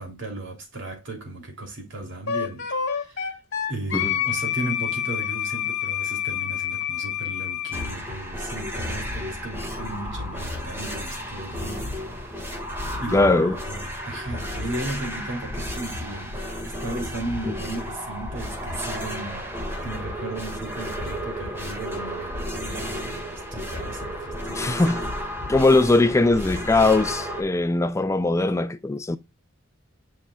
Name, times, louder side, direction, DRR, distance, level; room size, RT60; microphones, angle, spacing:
voice 1, 0.0-2.6 2.9-3.3 3.7-12.0 12.3-12.6 13.0-24.8 25.4-25.5, right 2 dB, 60° right, 2.8 m, -36 dB
Wind instrument woodwind instrument, 2.3-7.9, left 9 dB, 55° left, 2.2 m, -28 dB
sound 1, 7.7-27.4, equal, 10° right, 1.6 m, -32 dB
voice 2, 13.1-13.6 24.5-25.1 25.5-29.2, left 2 dB, 15° left, 0.3 m, -20 dB
8.7 x 5.4 x 2.3 m
head